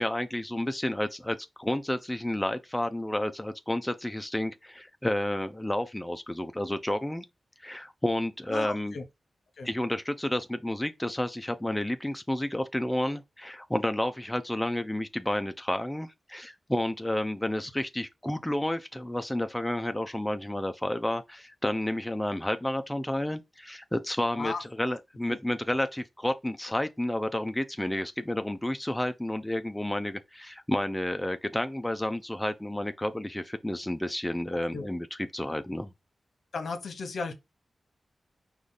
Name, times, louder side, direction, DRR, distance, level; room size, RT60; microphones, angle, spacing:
voice 1, 0.0-7.2 7.6-9.0 9.6-35.9, left 1 dB, 5° left, 0.4 m, -31 dB
voice 2, 8.5-9.0 9.6-9.7 24.4-24.6 34.7-34.9 36.5-37.3, left 4 dB, 70° left, 1.0 m, -34 dB
4.9 x 2.3 x 4.0 m
wide cardioid pair, 150°, 0 cm